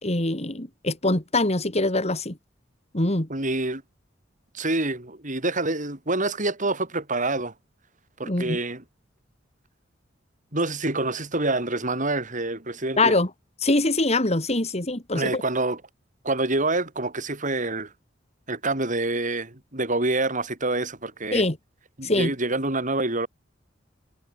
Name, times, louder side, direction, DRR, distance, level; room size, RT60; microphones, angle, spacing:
voice 1, 0.0-2.4 2.9-3.3 8.2-8.6 13.0-13.3 13.6-15.4 21.3-21.6 22.0-22.3, left 2 dB, 35° left, 3.1 m, -23 dB
voice 2, 3.3-3.8 4.5-7.5 8.2-8.8 10.5-13.1 15.1-15.8 16.2-17.9 18.5-21.4 22.0-23.3, right 2 dB, 45° right, 6.6 m, -26 dB
head